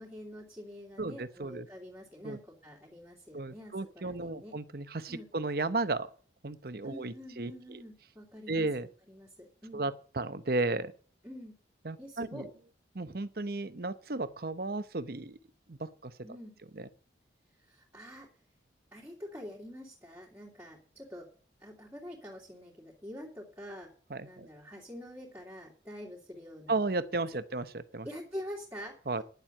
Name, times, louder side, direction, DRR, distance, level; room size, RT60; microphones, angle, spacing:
voice 1, 0.0-4.6 5.1-5.3 6.8-8.7 9.1-9.8 11.2-11.6 12.0-12.5 16.2-16.6 17.6-18.3 18.9-21.3 21.6-23.9 24.2-26.8 28.0-29.0, equal, 10° right, 2.8 m, -46 dB
voice 2, 1.0-1.7 2.2-2.4 3.3-6.1 6.4-7.8 8.5-8.9 9.7-10.9 11.8-12.5 12.9-15.4 15.7-16.1 16.8-16.9 24.1-24.5 26.7-28.1 29.1-29.2, right 2 dB, 55° right, 0.8 m, -34 dB
10.5 x 7.5 x 7.8 m
head